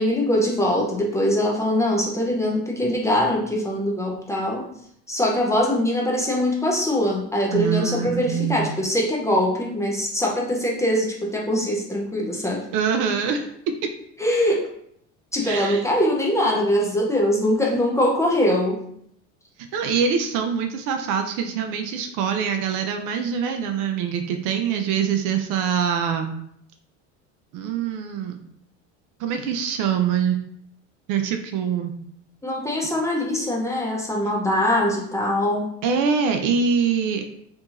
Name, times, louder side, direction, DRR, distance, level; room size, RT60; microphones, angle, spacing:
voice 1, 0.0-4.6 5.1-12.6 14.2-14.7 15.3-18.8 32.4-35.7, left 1 dB, 10° left, -2 dB, 0.5 m, -22 dB
voice 2, 7.5-8.7 12.7-13.5 15.4-15.8 19.7-26.3 27.5-28.4 29.2-30.4 31.1-31.9 35.8-37.2, right 7 dB, 55° right, 5 dB, 0.4 m, -24 dB
2.7 x 2.6 x 2.4 m, 0.69 s
hypercardioid pair, 85°, 38 cm